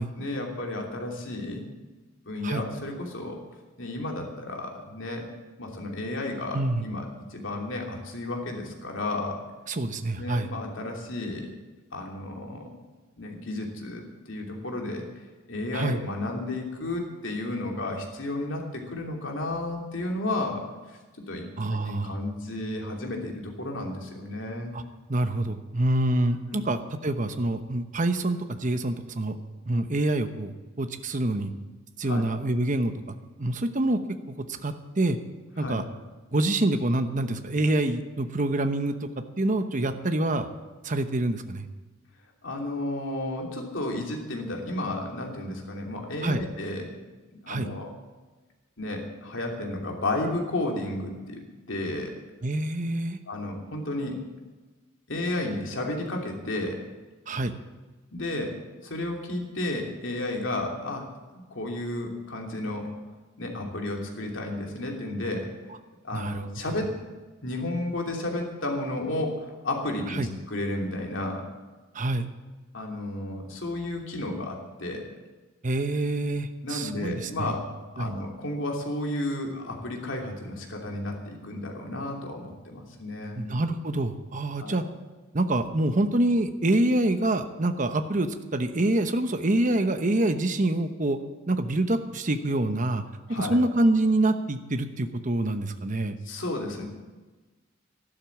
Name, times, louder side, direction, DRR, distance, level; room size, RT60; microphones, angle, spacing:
voice 1, 0.2-1.6 2.3-3.4 3.8-5.3 5.6-9.4 10.2-11.5 11.9-12.7 13.2-15.1 15.5-21.0 21.3-24.8 26.5-26.6 32.0-32.2 35.6-35.8 42.4-46.9 47.3-47.9 48.8-52.1 53.3-54.2 55.1-56.9 58.1-62.9 63.4-65.5 66.0-66.9 67.4-71.5 72.7-75.1 76.6-83.4 84.6-84.8 93.3-93.6 96.2-96.9, left 2 dB, 70° left, 1 dB, 3.0 m, -32 dB
voice 2, 6.5-6.9 9.7-10.5 15.7-16.0 21.6-22.2 24.7-24.8 25.1-29.4 29.7-31.5 32.0-34.0 34.3-35.2 35.6-35.8 36.3-38.9 39.4-40.5 40.8-41.7 46.2-46.4 47.5-47.7 52.4-53.2 57.3-57.5 66.1-66.4 70.1-70.3 71.9-72.3 75.6-77.5 78.0-78.1 83.4-84.8 85.3-91.2 91.5-93.0 93.3-96.2, right 1 dB, 40° right, 8 dB, 0.9 m, -26 dB
12.5 x 12.0 x 7.3 m, 1.2 s
head